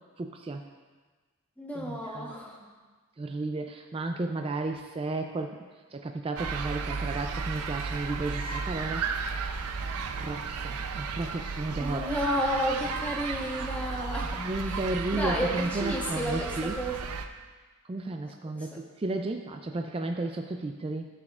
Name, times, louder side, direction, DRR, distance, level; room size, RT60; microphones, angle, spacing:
voice 1, 0.2-0.6 1.7-2.3 3.2-5.6 5.9-9.2 10.2-12.1 14.4-16.8 17.9-21.1, right 2 dB, 25° right, 4 dB, 0.3 m, -33 dB
voice 2, 1.6-2.7 11.8-14.4 14.7-14.8 15.1-17.0 18.3-18.8, equal, 5° left, -3 dB, 1.0 m, -32 dB
sound 1, 6.4-17.3, right 5 dB, 85° right, 0.5 m, -34 dB
13.5 x 6.9 x 2.4 m, 1.4 s
head